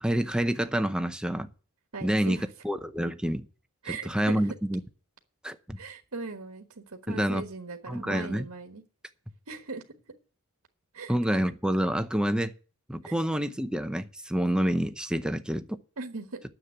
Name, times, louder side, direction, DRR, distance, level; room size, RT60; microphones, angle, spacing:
voice 1, 0.0-1.5 2.0-2.4 2.6-3.5 4.0-4.8 5.4-5.8 7.1-7.4 7.9-8.5 11.1-12.5 12.9-15.8, equal, 5° right, 0.7 m, -27 dB
voice 2, 1.9-2.5 3.8-4.5 5.8-8.8 9.5-9.8 10.9-11.1 13.0-13.1 16.0-16.4, right 4 dB, 75° right, 1.4 m, -39 dB
9.8 x 7.4 x 9.1 m
head